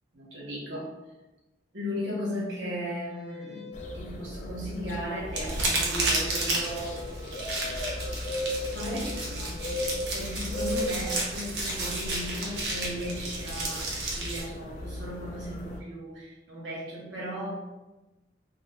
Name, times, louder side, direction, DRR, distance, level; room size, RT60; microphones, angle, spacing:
voice 1, 0.1-0.9 1.7-7.2 8.7-17.5, equal, 80° right, -5 dB, 1.0 m, -36 dB
sound 1, 3.1-4.0 5.2-5.8 7.5-8.2 9.0-9.7, left 3 dB, 5° right, 0.6 m, -45 dB
sound 2, 3.7-15.8, left 1 dB, 40° left, 0.3 m, -36 dB
sound 3, 5.3-14.4, right 2 dB, 65° right, 0.7 m, -32 dB
2.4 x 2.4 x 3.2 m, 1.1 s
head